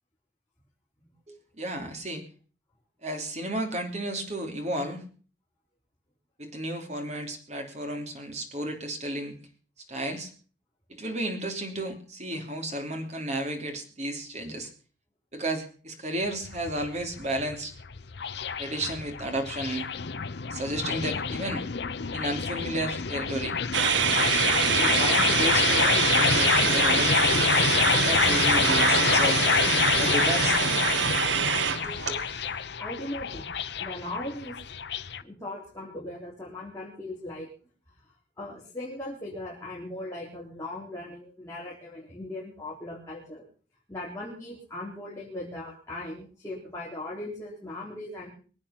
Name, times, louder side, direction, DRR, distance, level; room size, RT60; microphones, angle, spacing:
voice 1, 1.3-2.2 3.0-5.0 6.4-9.4 9.9-10.3 10.9-14.7 15.3-17.7 18.6-19.9 20.5-21.6 22.1-23.6 24.6-29.4 30.0-30.8 31.8-32.2, right 1 dB, 40° right, 4 dB, 3.1 m, -33 dB
sound 1, 16.2-35.2, left 6 dB, 65° left, 0.7 m, -27 dB
sound 2, 23.7-32.3, right 8 dB, 80° right, 0.8 m, -25 dB
voice 2, 32.8-33.5 33.8-34.6 35.2-37.5 38.4-43.4 43.9-48.3, left 1 dB, 15° left, -5 dB, 4.1 m, -38 dB
23.0 x 8.8 x 5.9 m, 0.40 s
head